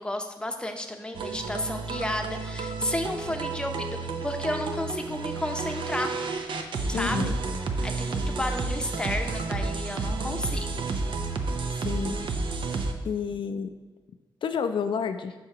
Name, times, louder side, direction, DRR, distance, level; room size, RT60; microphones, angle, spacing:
voice 1, 0.0-6.1 6.9-7.3 7.8-10.9, left 1 dB, 10° left, 4 dB, 0.7 m, -32 dB
sound 1, 1.1-12.9, right 3 dB, 70° right, 0.6 m, -31 dB
voice 2, 6.9-7.4 11.7-12.2 13.0-13.7 14.4-15.3, left 6 dB, 75° left, 8 dB, 0.4 m, -30 dB
7.9 x 5.6 x 2.9 m, 1.4 s
cardioid pair, 90°, 9 cm